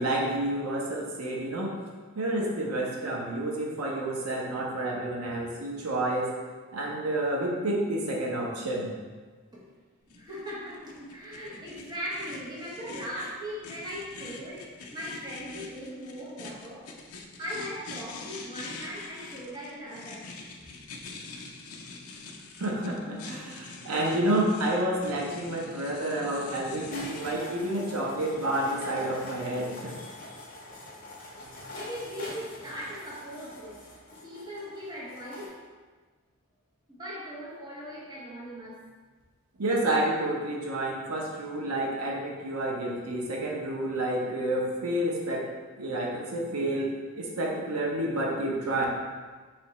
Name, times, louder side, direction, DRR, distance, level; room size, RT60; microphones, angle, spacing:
voice 1, 0.0-1.8 2.1-6.3 6.7-8.9 22.6-29.9 39.6-45.4 45.8-48.8, right 1 dB, 85° right, -2 dB, 0.7 m, -29 dB
sound 1, 10.1-27.4, left 3 dB, 75° left, 0.5 m, -44 dB
voice 2, 10.1-16.9 17.4-20.4 30.7-30.9 31.4-33.9 34.2-35.6 36.9-38.9, equal, 20° right, -7 dB, 0.8 m, -39 dB
sound 2, 26.9-35.5, left 2 dB, 40° left, 0.7 m, -44 dB
3.3 x 2.8 x 4.1 m, 1.4 s
head